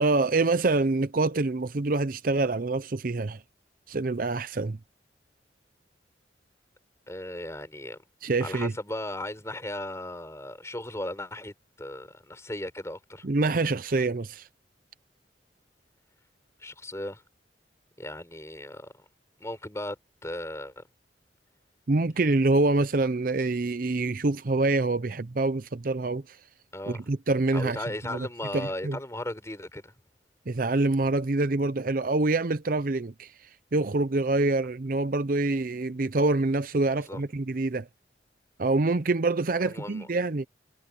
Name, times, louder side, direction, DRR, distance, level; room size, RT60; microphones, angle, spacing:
voice 1, 0.0-3.4 3.9-4.8 8.2-8.7 13.2-14.5 21.9-26.4 26.9-27.8 28.1-28.3 28.5-29.0 30.5-33.3 33.7-37.9 38.6-40.5, right 2 dB, 50° right, 0.6 m, -26 dB
voice 2, 7.1-8.0 8.4-13.2 16.6-17.2 18.0-18.9 19.4-20.0 20.2-20.8 26.7-27.0 27.5-29.9 37.1-37.2 39.6-40.1, left 1 dB, 15° left, 4.5 m, -36 dB
head